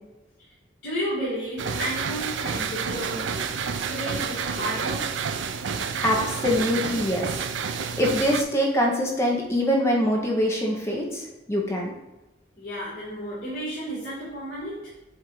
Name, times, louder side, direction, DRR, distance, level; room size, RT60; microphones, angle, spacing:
voice 1, 0.8-5.2 12.6-14.9, equal, 55° left, -12 dB, 2.1 m, -33 dB
sound 1, 1.6-8.4, right 6 dB, 70° right, 0.4 m, -29 dB
voice 2, 6.0-11.2 11.5-11.9, equal, 15° left, -2 dB, 1.0 m, -24 dB
7.4 x 2.7 x 4.7 m, 1.0 s
head